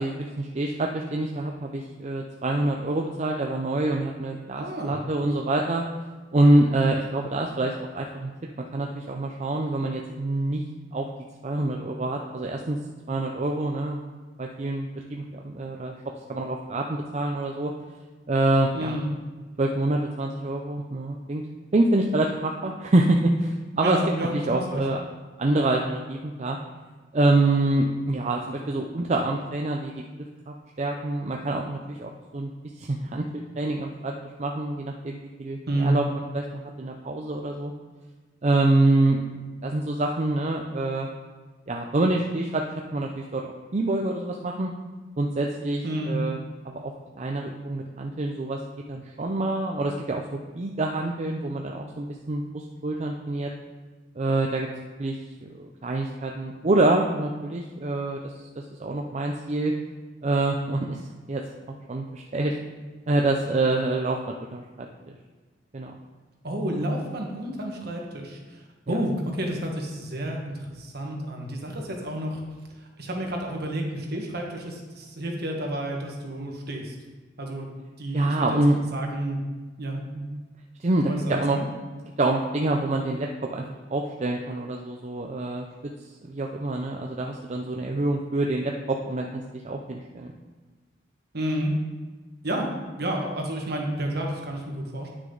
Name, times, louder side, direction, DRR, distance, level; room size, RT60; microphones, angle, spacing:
voice 1, 0.0-5.8 6.3-8.3 8.6-10.6 10.9-11.1 11.4-12.8 13.1-14.0 14.4-16.0 16.3-17.7 18.3-19.0 19.6-21.4 21.7-24.0 24.3-25.0 25.4-26.6 27.1-30.0 30.5-32.5 32.8-33.2 33.6-34.1 34.4-37.7 38.4-39.2 39.6-41.1 41.7-42.6 42.9-44.7 45.2-46.4 46.7-48.6 48.9-53.5 54.2-54.7 55.0-59.7 60.2-61.0 61.3-61.4 61.9-62.5 63.1-65.2 65.7-66.0 68.9-69.0 78.1-78.8 80.1-80.4 80.8-81.6 82.2-83.6 83.9-85.7 86.2-90.3, right 2 dB, 40° right, 1 dB, 0.5 m, -26 dB
voice 2, 4.6-4.9 18.7-19.1 23.8-24.8 35.7-36.0 45.8-46.1 66.4-72.4 72.7-76.9 77.4-77.7 78.0-78.6 78.9-79.4 79.8-80.0 81.0-81.7 91.3-91.7 92.4-92.7 93.0-95.1, right 1 dB, 60° right, 1 dB, 1.5 m, -30 dB
9.7 x 6.2 x 3.9 m, 1.3 s
head